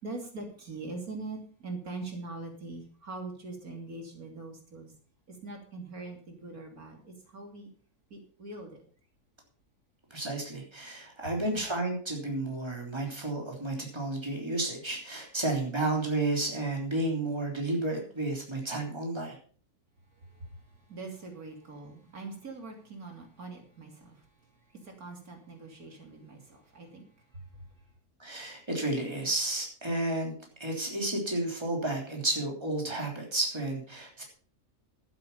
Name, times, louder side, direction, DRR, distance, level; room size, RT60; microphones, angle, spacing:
voice 1, 0.0-4.9 5.3-7.7 8.1-8.8 11.2-11.7 20.3-24.2 24.7-27.0 27.3-27.4, right 3 dB, 70° right, 2 dB, 3.4 m, -42 dB
voice 2, 10.1-19.4 28.2-30.3 30.6-34.2, right 2 dB, 15° right, 0 dB, 3.4 m, -32 dB
11.5 x 10.0 x 5.5 m, 0.44 s
omnidirectional pair, 1.6 m